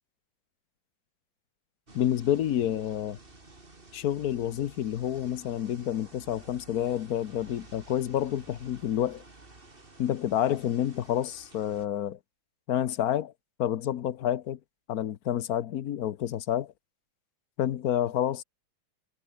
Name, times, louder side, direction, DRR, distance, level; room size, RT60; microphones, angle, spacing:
voice 1, 1.9-3.2 3.9-9.2 10.0-12.2 12.7-13.3 13.6-14.6 14.9-16.7 17.6-18.4, left 11 dB, 60° left, 1.1 m, -29 dB
sound 1, 1.9-11.9, right 2 dB, 25° right, 3.3 m, -52 dB
omnidirectional pair, 2.2 m